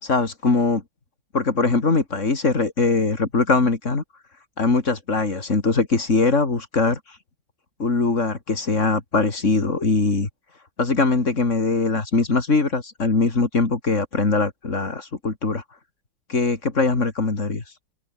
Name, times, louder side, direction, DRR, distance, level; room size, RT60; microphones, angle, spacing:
voice 1, 0.0-0.8 1.3-4.0 4.6-7.0 7.8-10.3 10.8-15.6 16.3-17.6, left 3 dB, 35° left, 3.1 m, -21 dB
omnidirectional pair, 2.3 m